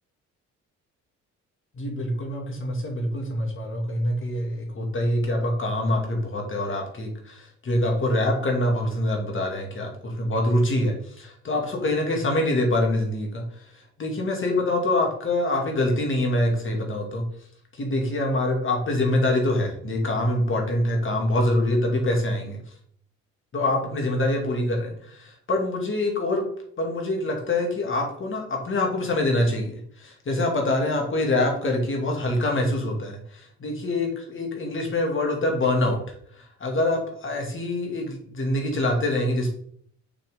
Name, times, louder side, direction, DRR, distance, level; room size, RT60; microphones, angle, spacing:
voice 1, 1.7-17.2 17.7-22.6 23.5-26.4 26.8-39.5, left 1 dB, 40° left, 1 dB, 2.5 m, -25 dB
6.7 x 5.8 x 3.9 m, 0.62 s
cardioid pair, 90°, 30 cm